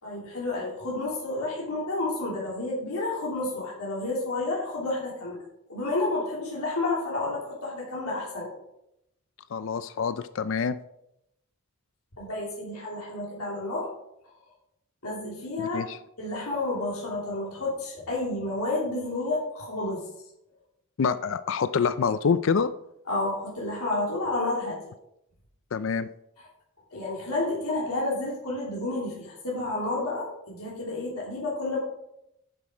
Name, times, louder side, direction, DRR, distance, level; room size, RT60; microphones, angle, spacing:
voice 1, 0.0-5.4 5.7-8.5 12.2-13.9 15.0-15.8 16.2-20.0 23.1-24.8 26.9-31.8, left 2 dB, 90° left, -5 dB, 3.0 m, -30 dB
voice 2, 9.5-10.8 15.6-16.0 21.0-22.7 25.7-26.1, left 6 dB, 60° left, 14 dB, 0.4 m, -26 dB
10.0 x 7.7 x 4.9 m, 0.82 s
head